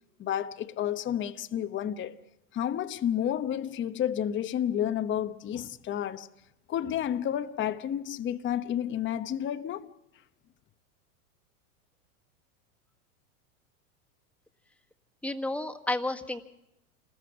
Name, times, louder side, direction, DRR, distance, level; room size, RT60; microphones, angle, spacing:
voice 1, 0.2-2.2 2.5-6.3 6.7-9.9, left 10 dB, 25° left, 0.9 m, -31 dB
voice 2, 15.2-16.4, left 2 dB, 5° left, 1.6 m, -31 dB
27.0 x 20.0 x 6.1 m
hypercardioid pair, 105°, 45 cm